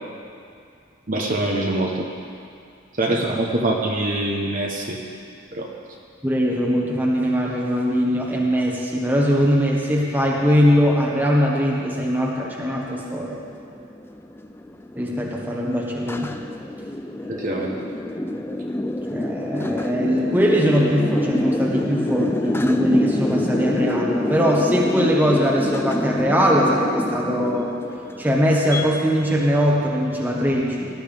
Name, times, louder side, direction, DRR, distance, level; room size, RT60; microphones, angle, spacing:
voice 1, 1.1-2.1 3.0-5.0 5.5-5.7 17.3-17.8, right 2 dB, 40° right, -1 dB, 1.0 m, -24 dB
voice 2, 3.1-3.4 6.2-13.4 14.9-16.3 19.1-27.7 28.2-30.9, equal, 10° right, -2 dB, 1.3 m, -21 dB
sound 1, 12.5-28.8, left 1 dB, 10° left, 0.4 m, -26 dB
18.5 x 12.5 x 3.5 m, 2.4 s
head